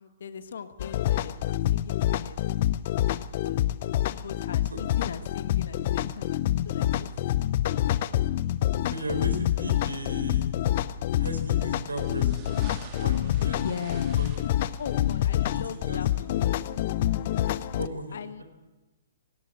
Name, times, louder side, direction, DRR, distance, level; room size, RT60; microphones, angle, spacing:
voice 1, 0.0-2.4 3.2-3.8 4.1-7.1 13.4-14.2 14.8-16.6 18.1-18.4, left 7 dB, 60° left, 12 dB, 1.3 m, -39 dB
sound 1, 0.8-17.9, left 13 dB, 45° left, 0.7 m, -27 dB
voice 2, 8.9-10.5 11.1-12.4 13.0-13.7 14.2-14.3 15.4-16.6 17.8-18.4, equal, 80° right, 6 dB, 4.4 m, -36 dB
sound 2, 11.8-17.8, right 6 dB, 30° right, 2.8 m, -50 dB
18.0 x 17.5 x 8.2 m, 1.1 s
figure-of-eight pair, 120°, 0 cm